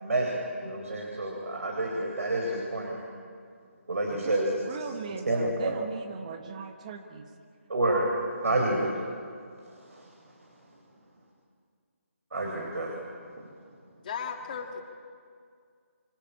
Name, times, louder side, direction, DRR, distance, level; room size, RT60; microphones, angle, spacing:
voice 1, 0.0-3.0 3.9-4.5 5.3-5.7 7.7-8.1 8.4-8.9 12.3-12.9, right 2 dB, 75° right, 0 dB, 4.4 m, -28 dB
voice 2, 4.1-7.2 8.5-8.7, right 5 dB, 30° right, 6 dB, 1.6 m, -39 dB
voice 3, 14.0-14.8, left 6 dB, 35° left, 4 dB, 1.9 m, -35 dB
26.0 x 16.0 x 8.7 m, 2.2 s
figure-of-eight pair, 160°, 8 cm